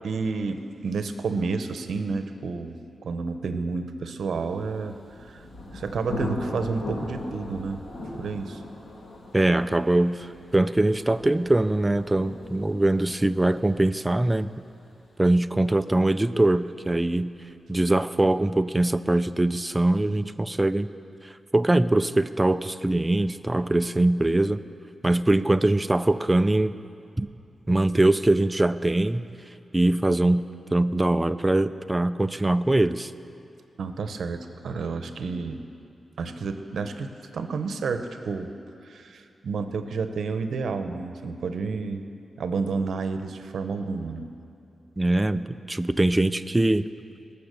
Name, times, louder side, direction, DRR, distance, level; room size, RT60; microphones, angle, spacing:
voice 1, 0.0-2.8 3.0-5.4 5.7-7.8 8.2-8.6 33.8-35.6 36.2-38.5 38.8-42.1 42.4-44.3, right 4 dB, 80° right, 8 dB, 0.8 m, -30 dB
Thunder, 4.7-16.3, left 1 dB, 75° left, 2.8 m, -39 dB
voice 2, 9.3-14.5 15.2-17.3 17.7-20.9 21.5-24.6 25.0-26.7 27.2-27.3 27.7-29.3 29.7-30.5 30.7-33.1 45.0-46.9, right 1 dB, 15° right, 12 dB, 0.4 m, -22 dB
19.5 x 6.9 x 6.8 m, 2.6 s
wide cardioid pair, 100°, 0 cm